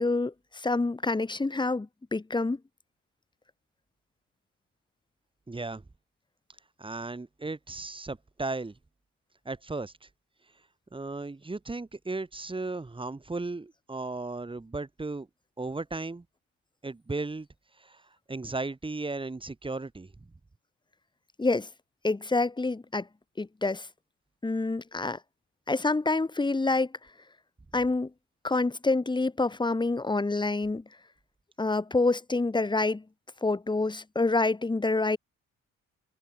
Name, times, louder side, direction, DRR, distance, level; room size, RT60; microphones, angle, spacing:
voice 1, 0.0-2.6 21.4-21.7 22.0-23.1 23.4-23.9 24.4-25.2 25.7-26.9 27.7-28.1 28.4-30.8 31.6-33.0 33.4-35.2, left 3 dB, 15° left, 1.5 m, -27 dB
voice 2, 5.5-5.8 6.8-8.7 9.5-10.1 10.9-15.3 15.6-16.2 16.8-17.5 17.8-18.0 18.3-20.1, right 3 dB, 15° right, 2.0 m, -35 dB
cardioid pair, 90°, 30 cm